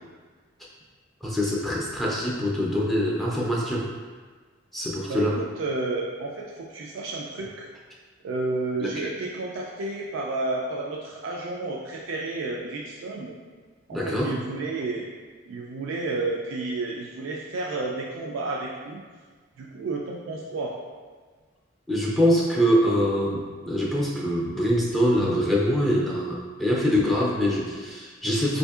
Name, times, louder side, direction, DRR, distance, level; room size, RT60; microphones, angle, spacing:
voice 1, 1.2-3.9 4.7-5.4 8.8-8.9 13.9-14.3 21.9-28.6, equal, ahead, -5 dB, 0.3 m, -24 dB
voice 2, 5.1-7.7 8.2-13.3 13.9-15.1 15.5-19.0 19.6-20.7, right 2 dB, 75° right, -2 dB, 0.4 m, -31 dB
4.7 x 2.6 x 2.3 m, 1.5 s
head